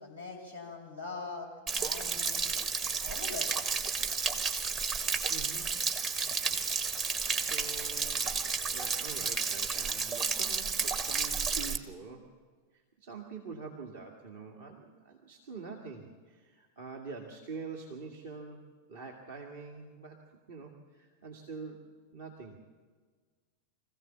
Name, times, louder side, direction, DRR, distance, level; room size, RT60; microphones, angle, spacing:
voice 1, 0.0-1.5 1.8-2.5 3.0-3.5, left 3 dB, 90° right, -2 dB, 5.9 m, -42 dB
Stream / Splash splatter / Trickle dribble, 1.7-11.8, right 5 dB, 30° right, 1.4 m, -32 dB
voice 2, 5.3-5.7 7.2-8.4 8.7-12.3 13.0-18.6 18.9-20.2 20.5-22.6, right 4 dB, 55° right, 1 dB, 2.1 m, -45 dB
24.5 x 15.5 x 7.3 m, 1.5 s
figure-of-eight pair, 90°, 0 cm